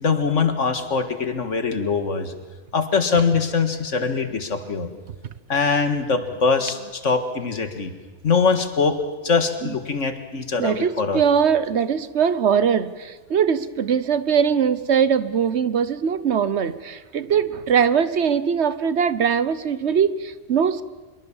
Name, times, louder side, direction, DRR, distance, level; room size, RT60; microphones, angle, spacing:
voice 1, 0.0-2.3 2.7-4.9 5.5-7.9 8.2-9.0 9.2-11.2, left 5 dB, 80° left, 8 dB, 2.1 m, -22 dB
voice 2, 10.6-20.8, right 7 dB, 65° right, 15 dB, 1.2 m, -21 dB
25.0 x 23.0 x 7.2 m, 1.3 s
omnidirectional pair, 1.3 m